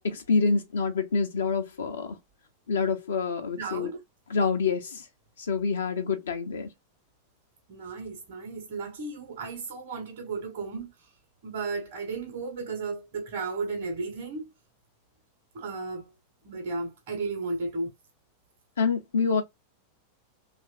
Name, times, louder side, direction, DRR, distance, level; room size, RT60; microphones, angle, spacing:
voice 1, 0.0-2.2 2.7-3.9 4.3-5.0 5.4-6.7 18.8-19.4, left 5 dB, 65° left, 0.5 m, -27 dB
voice 2, 3.6-4.0 7.7-10.9 11.4-14.5 15.5-16.1 16.4-17.9, right 3 dB, 50° right, 1.1 m, -34 dB
3.0 x 2.5 x 2.4 m
figure-of-eight pair, 90°, 0 cm